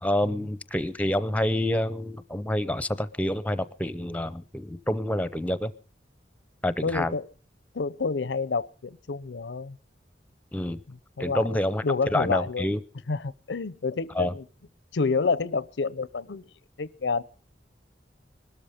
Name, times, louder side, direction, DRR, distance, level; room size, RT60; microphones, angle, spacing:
voice 1, 0.0-5.7 6.6-7.1 10.5-10.8 11.2-11.8 12.1-12.8 14.2-14.3, left 1 dB, 10° left, 0.6 m, -27 dB
voice 2, 6.8-7.3 7.7-9.8 10.9-12.7 13.1-14.5 14.9-16.5 16.8-17.2, left 4 dB, 85° left, 0.6 m, -29 dB
21.0 x 13.0 x 5.0 m
head